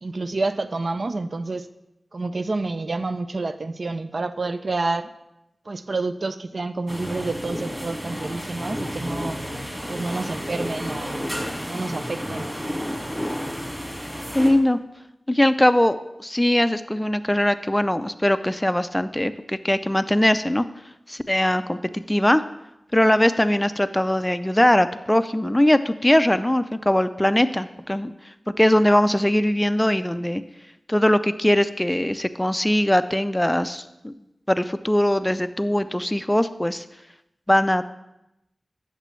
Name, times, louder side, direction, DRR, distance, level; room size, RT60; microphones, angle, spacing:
voice 1, 0.0-1.7 2.1-5.1 5.7-9.4 9.9-11.3 11.7-12.5, right 3 dB, 60° right, 10 dB, 0.4 m, -28 dB
sound 1, 6.9-14.5, equal, 5° right, 1.8 m, -31 dB
voice 2, 14.3-14.8 15.3-20.6 21.1-22.4 22.9-28.1 28.5-30.4 30.9-34.1 34.5-36.8 37.5-37.8, left 1 dB, 15° left, 12 dB, 0.4 m, -21 dB
10.5 x 6.7 x 3.1 m, 0.90 s
wide cardioid pair, 55°, 0 cm